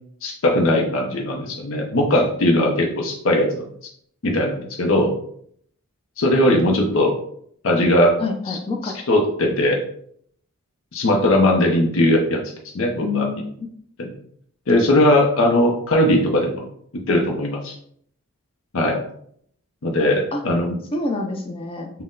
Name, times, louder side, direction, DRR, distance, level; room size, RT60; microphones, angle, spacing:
voice 1, 0.2-3.6 4.2-5.1 6.2-7.2 7.6-8.2 8.5-8.6 8.8-9.8 10.9-12.4 12.7-13.3 14.0-14.1 14.7-16.6 16.9-17.8 18.7-19.0 19.8-20.8, left 1 dB, 65° left, 0 dB, 0.6 m, -19 dB
voice 2, 8.2-8.9 13.0-13.7 20.3-20.4 20.9-21.9, left 3 dB, 25° left, 2 dB, 0.4 m, -27 dB
4.2 x 2.1 x 3.7 m, 0.65 s
head